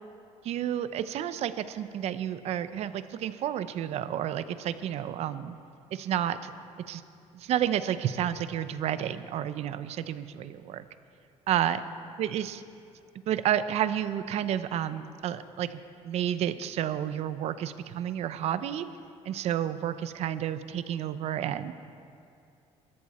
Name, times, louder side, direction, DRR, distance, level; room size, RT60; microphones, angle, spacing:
voice 1, 0.4-5.6 5.9-6.5 6.9-7.0 7.3-10.8 11.5-11.8 12.2-12.6 13.3-18.9 19.2-21.7, right 10 dB, 60° right, 13 dB, 0.7 m, -30 dB
23.0 x 13.5 x 4.3 m, 2.5 s
cardioid pair, 145°, 13 cm